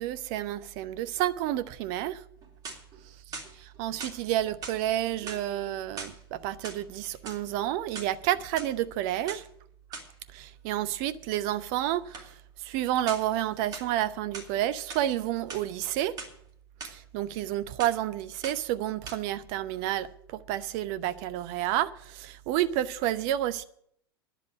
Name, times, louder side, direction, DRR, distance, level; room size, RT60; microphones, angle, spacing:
voice 1, 0.0-2.2 3.6-9.4 10.3-12.3 12.6-16.1 16.8-23.6, right 13 dB, 45° right, 0.8 m, -30 dB
sound 1, 2.4-3.0 3.3-4.2 4.6-4.8 5.2-6.2 6.5-7.4 7.8-8.7 9.3-9.4 9.9-10.1 12.1-12.3 13.1-13.4 13.7-14.5 14.9-15.1 15.4-16.3 16.8-16.9 17.3-17.5 17.8-18.1 18.4-18.7 19.1-19.2, right 4 dB, 30° right, 3.1 m, -41 dB
10.5 x 7.4 x 9.7 m
figure-of-eight pair, 85°, 13 cm